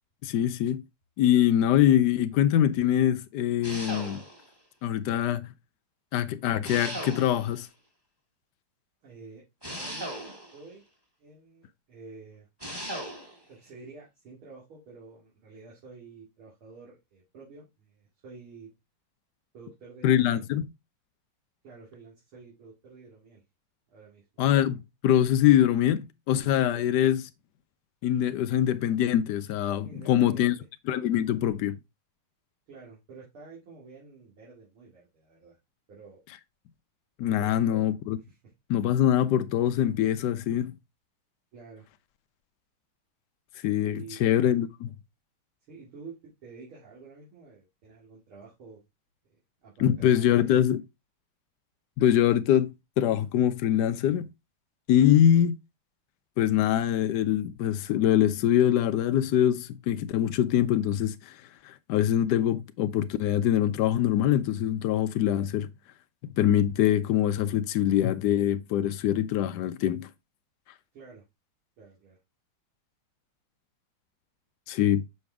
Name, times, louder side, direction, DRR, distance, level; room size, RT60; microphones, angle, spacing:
voice 1, 0.2-0.8 1.2-4.2 4.8-5.5 6.1-7.7 20.0-20.6 24.4-27.2 28.0-30.5 30.9-31.8 37.2-38.2 38.7-40.7 43.6-44.9 49.8-50.8 52.0-54.3 54.9-55.6 56.4-61.4 61.6-65.7 66.4-70.1 74.7-75.0, left 11 dB, 90° left, 0.9 m, -24 dB
sound 1, 3.6-4.5 6.6-7.6 9.6-10.7 12.6-13.4, equal, 10° right, 1.8 m, -37 dB
voice 2, 9.0-9.4 9.7-10.8 11.2-12.5 13.4-18.7 19.5-20.4 21.6-23.4 23.9-24.4 26.7-26.9 29.8-30.5 32.7-35.6 35.9-36.2 37.4-37.9 38.3-38.4 41.5-41.9 43.8-44.2 45.7-46.2 46.4-48.8 49.6-50.6 70.9-71.2 71.8-72.2, right 4 dB, 75° right, 3.4 m, -49 dB
6.8 x 5.3 x 3.4 m
omnidirectional pair, 2.4 m